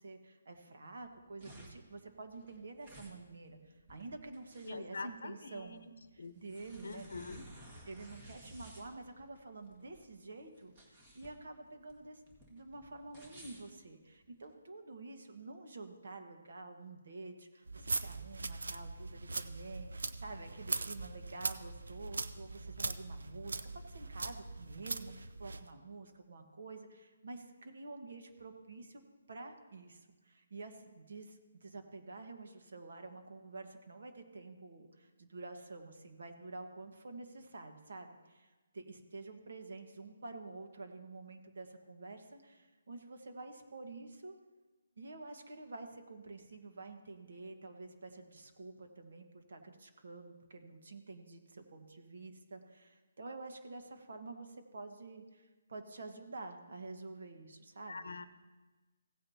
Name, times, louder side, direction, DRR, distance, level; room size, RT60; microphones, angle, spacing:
voice 1, 0.0-5.8 6.1-7.1 7.8-12.2 12.5-23.6 23.9-29.0 29.3-44.3 45.0-58.1, right 3 dB, 70° right, 5 dB, 1.4 m, -49 dB
sound 1, 1.0-14.5, right 1 dB, 25° right, 1.8 m, -56 dB
voice 2, 4.6-5.8 6.2-6.3 6.8-7.4 57.9-58.2, left 4 dB, 75° left, 12 dB, 0.8 m, -44 dB
sound 2, 17.7-25.7, right 3 dB, 85° right, 0.6 m, -41 dB
16.5 x 8.9 x 2.8 m, 1.2 s
hypercardioid pair, 160°, 0 cm